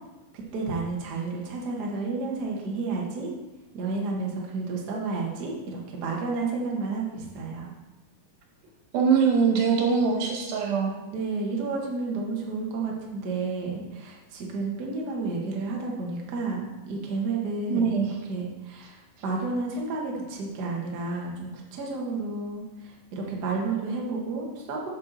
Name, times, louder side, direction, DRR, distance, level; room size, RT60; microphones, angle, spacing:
voice 1, 0.3-3.3 3.7-7.7 11.1-18.0 18.3-24.9, right 3 dB, 75° right, -2 dB, 0.9 m, -31 dB
voice 2, 8.9-10.9 17.7-18.1, right 6 dB, 90° right, 0 dB, 3.2 m, -22 dB
8.3 x 6.3 x 4.0 m, 1.1 s
omnidirectional pair, 4.1 m